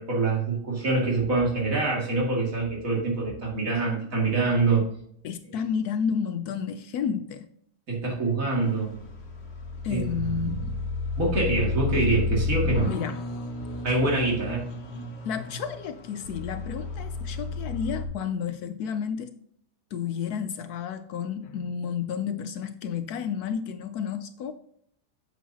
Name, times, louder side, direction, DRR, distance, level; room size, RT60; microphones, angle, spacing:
voice 1, 0.0-4.8 7.9-8.9 9.9-10.0 10.4-10.7 11.2-12.9 13.8-14.6, right 3 dB, 50° right, -2 dB, 2.6 m, -25 dB
voice 2, 5.2-7.5 9.8-10.7 12.9-13.2 15.2-19.3 19.9-24.5, left 7 dB, 70° left, 10 dB, 1.0 m, -31 dB
sound 1, 8.6-18.0, left 3 dB, 45° left, 1.3 m, -32 dB
8.5 x 7.4 x 2.7 m, 0.68 s
omnidirectional pair, 1.8 m